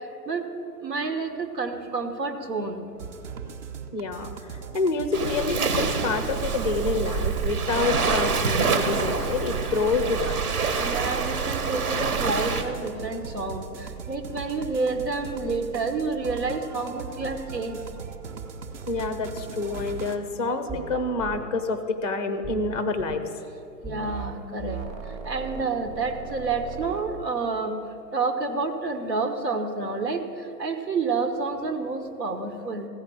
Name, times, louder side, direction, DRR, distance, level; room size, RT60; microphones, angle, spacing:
voice 1, 0.8-2.9 10.8-17.8 23.8-24.8 25.2-27.7 28.1-30.2 30.6-32.9, right 4 dB, 85° right, 6 dB, 1.4 m, -29 dB
sound 1, 3.0-20.2, right 5 dB, 45° right, 0.9 m, -39 dB
voice 2, 3.9-10.4 18.9-23.3, left 3 dB, 30° left, 9 dB, 0.4 m, -27 dB
Waves surf, 5.1-12.6, right 5 dB, 65° right, 1.3 m, -26 dB
sound 2, 20.7-20.9 21.2-21.4 22.4-23.2 23.8-24.3 24.6-27.1, right 5 dB, 15° right, 0.9 m, -37 dB
15.0 x 5.2 x 8.5 m, 2.7 s
figure-of-eight pair, 130°, 49 cm